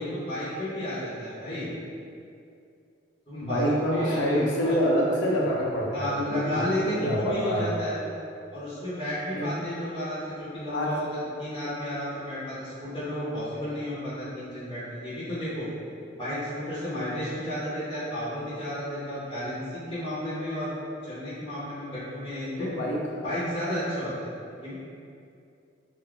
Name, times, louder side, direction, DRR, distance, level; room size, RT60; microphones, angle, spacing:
voice 1, 0.0-1.7 3.3-4.8 5.9-8.0 8.5-11.1 11.4-15.7 16.2-20.7 21.1-22.7 23.2-24.3 24.6-24.7, equal, 25° left, -11 dB, 0.7 m, -32 dB
voice 2, 3.4-7.7 9.3-9.5 10.7-10.9 22.6-23.0, equal, 80° left, -3 dB, 0.6 m, -26 dB
2.5 x 2.2 x 3.6 m, 2.5 s
head